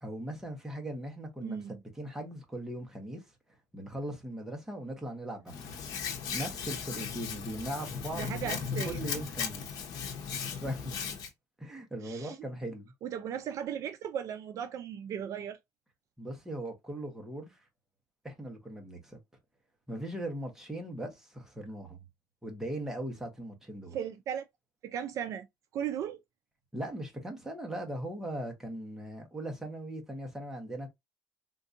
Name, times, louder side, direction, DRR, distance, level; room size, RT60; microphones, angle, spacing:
voice 1, 0.0-3.3 3.7-5.7 6.0-8.6 8.8-9.8 10.6-11.0 11.6-12.9 16.2-17.7 18.2-19.2 19.9-22.1 22.4-24.0 26.7-30.9, right 1 dB, 5° right, 1.0 m, -39 dB
voice 2, 1.4-1.8 8.1-9.0 12.0-12.4 13.0-15.6 23.9-24.4 24.8-25.5 25.7-26.2, right 9 dB, 50° right, 0.4 m, -36 dB
Hands, 5.5-11.3, left 6 dB, 60° left, 0.9 m, -37 dB
3.8 x 2.6 x 2.5 m
cardioid pair, 145°, 7 cm